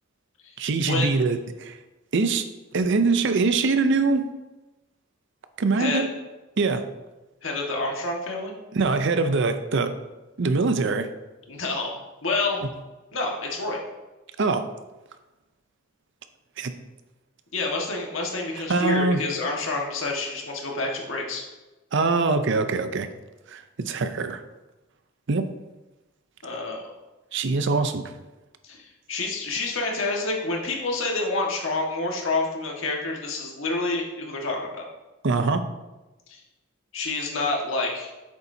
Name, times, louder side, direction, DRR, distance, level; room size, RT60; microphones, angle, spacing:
voice 1, 0.6-1.8 2.1-2.5 2.7-4.3 5.6-6.1 6.6-6.8 8.7-9.9 10.4-11.1 14.4-14.7 16.6-16.7 18.7-19.2 21.9-23.1 23.5-24.4 25.3-25.5 27.3-28.0 35.2-35.6, right 3 dB, 65° right, 9 dB, 0.6 m, -23 dB
voice 2, 7.4-8.5 11.5-12.6 13.1-13.8 17.5-21.4 26.4-26.9 28.6-34.8 36.3-36.4 36.9-38.1, left 3 dB, 70° left, 0 dB, 1.6 m, -28 dB
8.1 x 7.1 x 2.7 m, 1.1 s
head